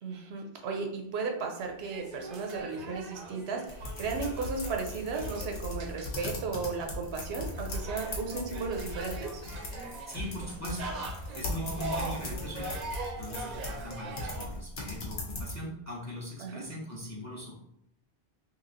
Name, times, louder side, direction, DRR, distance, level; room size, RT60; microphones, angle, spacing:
voice 1, 0.0-9.4 16.4-16.7, right 4 dB, 85° right, 2 dB, 0.9 m, -35 dB
sound 1, 1.6-14.5, right 2 dB, 50° right, 0.6 m, -42 dB
sound 2, 3.7-15.6, left 2 dB, 85° left, 1.0 m, -38 dB
voice 2, 10.1-10.9 11.3-12.8 13.1-17.6, equal, 20° left, -4 dB, 0.5 m, -40 dB
3.0 x 2.7 x 2.6 m, 0.75 s
omnidirectional pair, 1.0 m